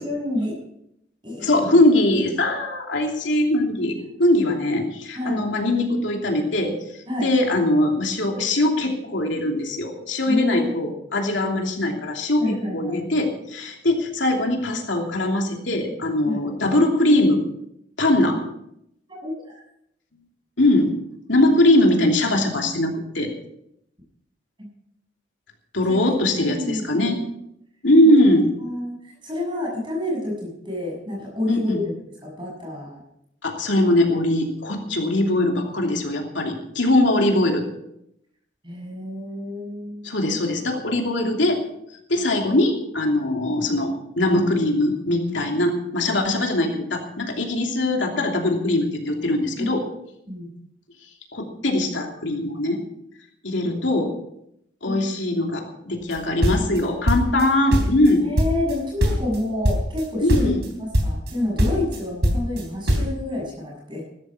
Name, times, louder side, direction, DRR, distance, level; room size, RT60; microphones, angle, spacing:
voice 1, 0.0-0.6 1.2-1.5 5.1-5.4 7.1-7.3 10.2-10.7 12.4-13.1 16.2-16.5 19.1-19.6 25.9-26.0 26.3-27.2 28.0-28.3 28.6-31.9 32.2-33.0 38.6-40.1 49.5-49.8 50.3-50.5 53.6-54.0 54.8-55.1 58.2-64.0, left 1 dB, 25° right, -1 dB, 6.8 m, -29 dB
voice 2, 1.4-6.7 7.2-17.4 18.0-18.4 20.6-20.9 21.3-23.3 25.7-27.2 27.8-28.5 31.5-31.8 33.4-37.7 40.0-41.6 42.1-49.8 51.3-52.8 53.4-54.1 54.8-58.3 60.2-60.6, left 1 dB, 85° left, 2 dB, 2.9 m, -21 dB
sound 1, 56.1-57.5 57.7-58.7 59.0-59.4 59.6-60.0 60.3-60.7 60.9-61.3 61.6-63.1, equal, 70° right, 3.3 m, -21 dB
15.5 x 13.0 x 5.0 m, 0.77 s
head